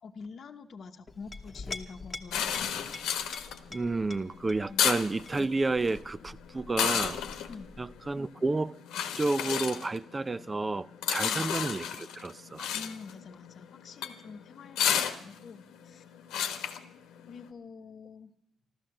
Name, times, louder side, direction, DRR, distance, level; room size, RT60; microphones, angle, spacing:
voice 1, 0.0-2.5 4.7-4.9 7.5-7.8 11.3-11.4 12.7-16.0 17.3-18.3, left 5 dB, 55° left, 1.0 m, -46 dB
Chink clink, 1.1-8.2, left 3 dB, 30° left, 1.1 m, -46 dB
sound 1, 2.3-17.5, left 8 dB, 90° left, 1.2 m, -33 dB
voice 2, 3.7-7.2 7.8-8.8 9.2-12.7, right 3 dB, 25° right, 0.5 m, -31 dB
13.5 x 13.0 x 7.7 m
cardioid pair, 90°, 0 cm